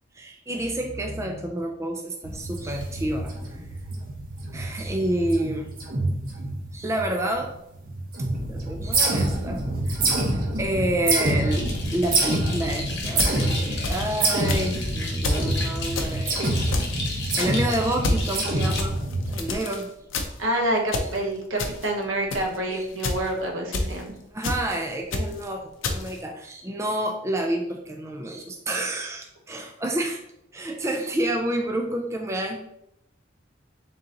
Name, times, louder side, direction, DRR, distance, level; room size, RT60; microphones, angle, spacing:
voice 1, 0.1-3.6 4.5-5.7 6.7-7.5 8.5-10.1 10.6-11.7 11.9-16.6 17.4-19.0 19.3-19.9 22.7-22.9 24.3-30.2 30.5-32.6, right 1 dB, 15° right, 2 dB, 0.3 m, -29 dB
sound 1, 2.2-7.5 7.7-19.4, right 2 dB, 45° right, 0.8 m, -27 dB
sound 2, 11.5-18.8, left 3 dB, 60° left, 1.0 m, -35 dB
sound 3, 13.1-14.2 14.5-14.8 15.2-15.5 16.0-16.2 16.7-17.0 17.4-17.6 18.0-18.3 18.8-19.8 20.1-20.5 20.9-21.2 21.6-21.9 22.3-22.6 23.0-23.3 23.7-24.0 24.4-24.8 25.1-25.4 25.8-26.2, left 2 dB, 75° left, 0.6 m, -28 dB
voice 2, 20.4-24.1, right 1 dB, 80° right, 0 dB, 0.9 m, -27 dB
3.8 x 2.8 x 3.7 m, 0.79 s
head